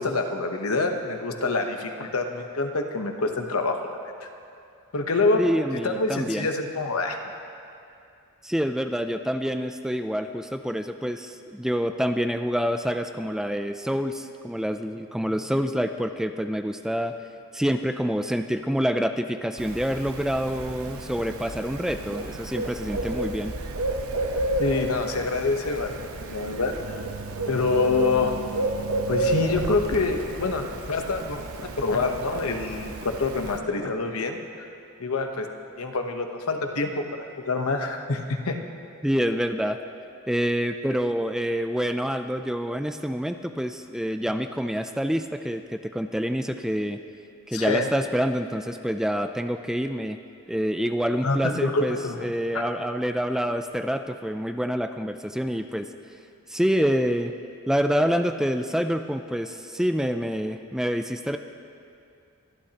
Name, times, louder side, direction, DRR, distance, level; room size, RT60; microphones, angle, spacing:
voice 1, 0.0-3.8 4.2-4.3 4.9-5.4 5.8-7.2 24.6-25.9 26.2-27.0 27.5-28.3 29.1-31.4 31.8-34.7 35.0-35.5 35.8-38.6 47.5-47.9 51.2-52.3 52.5-52.6, left 3 dB, 85° left, 5 dB, 1.0 m, -26 dB
voice 2, 5.4-6.5 8.4-17.1 17.5-23.5 39.0-39.8 40.3-47.0 47.5-50.2 50.5-55.9 56.5-57.3 57.7-61.4, equal, ahead, 7 dB, 0.3 m, -27 dB
Bird, 19.6-33.6, right 2 dB, 80° right, 0.9 m, -31 dB
23.5 x 12.0 x 2.9 m, 2.5 s
head